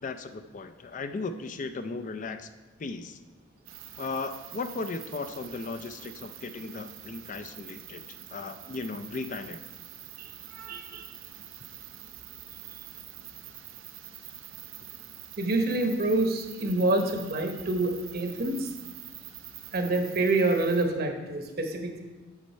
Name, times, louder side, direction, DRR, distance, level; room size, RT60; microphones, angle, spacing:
voice 1, 0.0-2.5 2.8-3.2 4.0-8.0 8.3-9.6, left 3 dB, 40° left, 9 dB, 0.4 m, -36 dB
sound 1, 3.7-20.9, right 11 dB, 80° right, 0.7 m, -46 dB
voice 2, 10.2-11.1 15.4-18.7 19.7-22.0, right 2 dB, 50° right, 4 dB, 1.0 m, -27 dB
8.4 x 6.3 x 4.3 m, 1.2 s
head